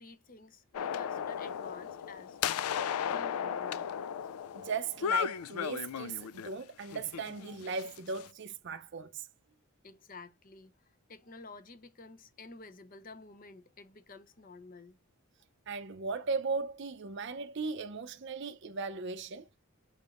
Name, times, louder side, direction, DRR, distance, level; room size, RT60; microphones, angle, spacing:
voice 1, 0.0-3.9 9.8-15.0, left 3 dB, 40° left, 0.7 m, -52 dB
sound 1, 0.7-6.5 6.9-8.3, left 9 dB, 85° left, 0.3 m, -35 dB
voice 2, 4.5-9.3 15.7-19.6, right 4 dB, 55° right, 0.5 m, -37 dB
6.4 x 3.5 x 2.4 m
head